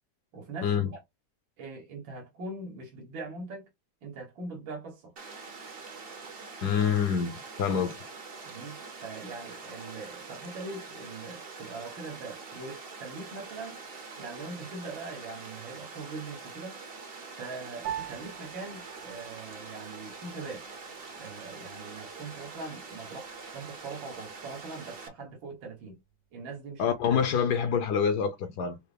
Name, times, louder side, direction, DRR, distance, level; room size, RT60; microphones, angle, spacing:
voice 1, 0.3-1.0 1.6-3.7 4.0-5.1 8.4-13.8 14.2-16.8 17.4-20.7 21.1-26.0 26.3-27.2, right 3 dB, 80° right, 2.1 m, -42 dB
Water, 5.2-25.1, right 4 dB, 45° right, 0.7 m, -44 dB
voice 2, 6.6-8.0 26.8-28.8, left 7 dB, 65° left, 1.1 m, -26 dB
Piano, 17.8-27.5, right 10 dB, 65° right, 1.6 m, -46 dB
5.5 x 2.1 x 3.3 m
omnidirectional pair, 2.1 m